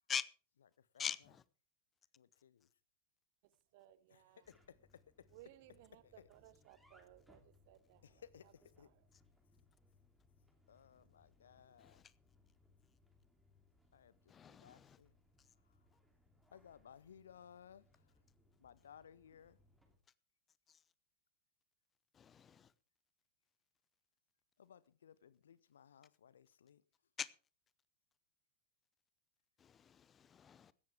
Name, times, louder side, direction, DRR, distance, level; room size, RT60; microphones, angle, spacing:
voice 1, 1.0-1.4 11.8-12.1 14.3-15.0 15.4-15.5 20.7-20.8 22.1-22.7 27.2-27.3 29.6-30.7, left 7 dB, 20° left, 0.7 m, -44 dB
voice 2, 2.2-2.7 4.1-5.3 6.0-6.3 8.0-8.9 10.7-12.0 13.9-15.2 15.6-15.9 16.5-18.2 18.6-19.6 24.6-26.8, left 8 dB, 65° left, 0.8 m, -61 dB
voice 3, 3.4-4.5 5.3-8.5 8.8-9.0, right 15 dB, 50° right, 1.2 m, -63 dB
sound 1, 4.4-20.0, left 2 dB, ahead, 2.9 m, -72 dB
16.5 x 13.5 x 3.5 m
figure-of-eight pair, 90°, 0 cm